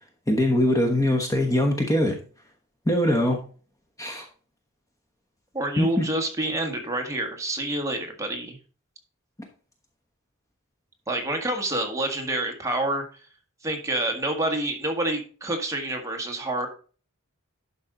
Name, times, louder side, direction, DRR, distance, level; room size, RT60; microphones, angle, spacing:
voice 1, 0.3-2.2 2.9-3.4 4.0-4.2 5.8-6.0, left 1 dB, 15° left, 3 dB, 1.1 m, -22 dB
voice 2, 5.5-8.6 11.1-13.0 13.6-16.7, right 1 dB, 15° right, 3 dB, 1.7 m, -28 dB
11.5 x 5.4 x 3.8 m, 0.38 s
head